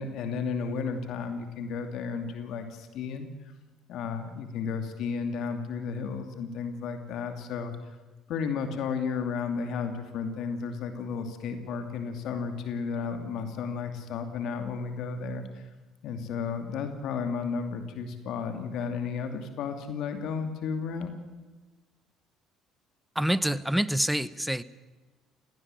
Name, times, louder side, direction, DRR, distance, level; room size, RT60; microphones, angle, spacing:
voice 1, 0.0-3.3 3.9-7.8 8.3-15.7 16.0-21.1, left 5 dB, 65° left, 7 dB, 2.6 m, -33 dB
voice 2, 23.1-24.6, right 1 dB, 5° right, 17 dB, 1.1 m, -26 dB
18.5 x 18.5 x 9.1 m, 1.2 s
hypercardioid pair, 65°, 0 cm